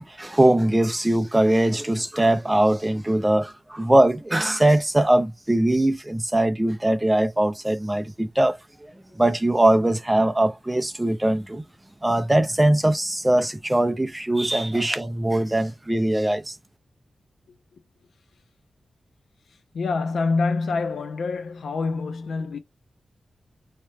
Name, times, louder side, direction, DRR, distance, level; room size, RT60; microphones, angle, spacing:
voice 1, 0.0-11.6 12.0-16.6, right 1 dB, 10° right, 0.4 m, -21 dB
voice 2, 19.5-22.6, left 4 dB, 75° left, 0.4 m, -26 dB
2.8 x 2.1 x 3.2 m
wide cardioid pair, 180°, 0 cm